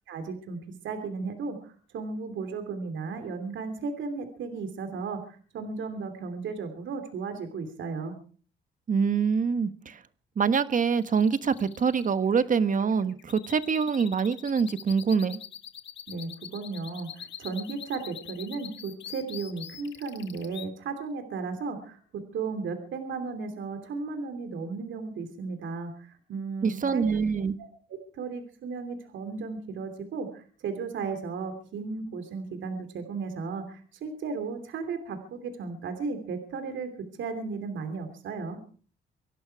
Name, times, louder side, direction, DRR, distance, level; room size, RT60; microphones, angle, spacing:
voice 1, 0.1-0.6 0.8-8.1 16.1-22.0 22.3-27.0 27.6-27.7 28.1-36.9 37.2-38.6, right 4 dB, 70° right, 3.1 m, -35 dB
voice 2, 8.9-10.0 10.4-15.4 26.6-27.5, right 6 dB, 40° right, 1.4 m, -25 dB
sound 1, 10.9-20.7, left 9 dB, 65° left, 1.7 m, -44 dB
25.0 x 11.5 x 4.8 m
cardioid pair, 90°, 20 cm